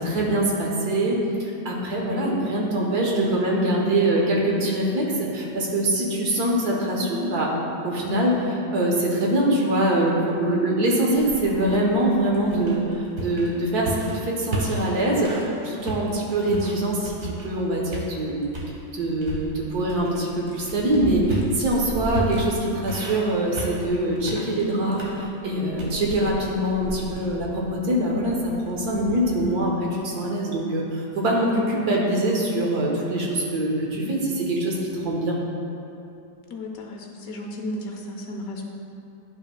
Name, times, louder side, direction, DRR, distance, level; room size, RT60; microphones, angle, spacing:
voice 1, 0.0-7.5 7.8-18.5 18.9-35.4, right 1 dB, 70° right, -2 dB, 1.6 m, -24 dB
sound 1, 11.2-15.5 15.8-17.6 17.9-18.7 19.2-29.7, right 1 dB, 50° right, 1.3 m, -34 dB
voice 2, 20.8-21.2 31.4-31.6 34.0-34.3 36.5-38.6, left 2 dB, 70° left, 1 dB, 1.0 m, -34 dB
10.5 x 5.5 x 2.2 m, 2.6 s
omnidirectional pair, 1.7 m